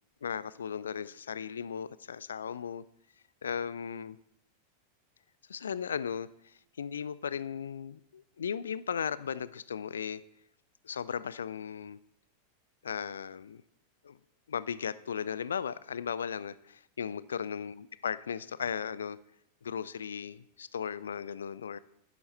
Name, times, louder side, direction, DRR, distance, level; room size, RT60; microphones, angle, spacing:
voice 1, 0.2-2.8 3.4-4.2 5.5-6.3 6.8-10.2 10.8-12.0 12.8-13.6 14.0-14.2 14.5-19.2 19.6-21.8, left 7 dB, 70° left, 18 dB, 0.4 m, -36 dB
11.0 x 10.0 x 4.2 m, 0.75 s
figure-of-eight pair, 90°, 0 cm